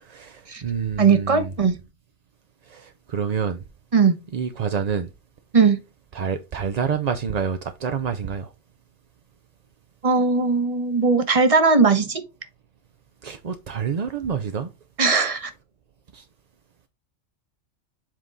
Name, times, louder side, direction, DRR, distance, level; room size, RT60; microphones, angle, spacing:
voice 1, 0.0-1.5 2.7-3.6 4.3-5.1 6.1-8.5 13.2-14.7 16.1-16.2, right 6 dB, 50° right, 0.5 m, -28 dB
voice 2, 1.0-1.8 3.9-4.2 5.5-5.8 10.0-12.2 15.0-15.5, right 4 dB, 30° right, 0.9 m, -19 dB
7.5 x 3.7 x 3.8 m
omnidirectional pair, 1.3 m